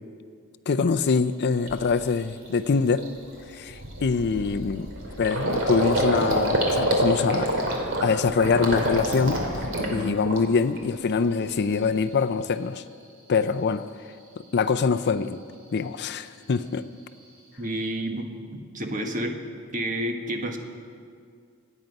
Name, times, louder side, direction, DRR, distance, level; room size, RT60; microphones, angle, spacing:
voice 1, 0.7-3.0 3.5-4.9 5.2-7.6 8.0-12.8 13.3-13.9 14.5-15.4 15.7-16.8, left 5 dB, 50° left, 12 dB, 0.5 m, -24 dB
Gurgling, 1.1-1.2 1.7-1.9 2.3-2.5 2.7-10.8 11.1-11.8, right 1 dB, 60° right, 2.7 m, -27 dB
voice 2, 17.6-19.4 19.7-20.6, right 1 dB, 35° right, 4 dB, 1.4 m, -30 dB
25.0 x 9.2 x 5.3 m, 2.2 s
head